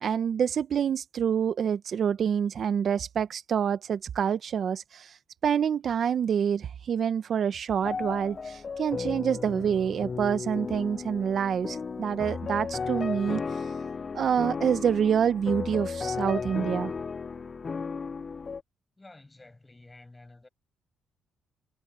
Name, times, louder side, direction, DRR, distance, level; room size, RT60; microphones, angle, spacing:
voice 1, 0.0-5.2 5.4-13.4 14.1-16.9, right 8 dB, 55° right, 0.9 m, -27 dB
sound 1, 7.8-18.6, left 5 dB, 35° left, 0.5 m, -34 dB
voice 2, 19.0-20.5, left 2 dB, 15° left, 8.0 m, -51 dB
supercardioid pair, 75°, 0 cm